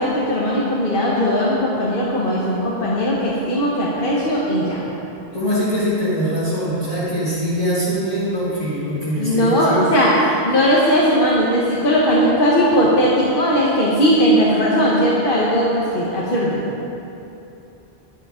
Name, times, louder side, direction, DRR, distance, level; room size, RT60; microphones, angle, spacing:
voice 1, 0.0-4.8 9.2-16.6, equal, 55° left, -6 dB, 1.4 m, -18 dB
voice 2, 5.3-10.0, equal, 35° left, -11 dB, 2.1 m, -22 dB
10.5 x 9.8 x 5.0 m, 2.9 s
omnidirectional pair, 1.0 m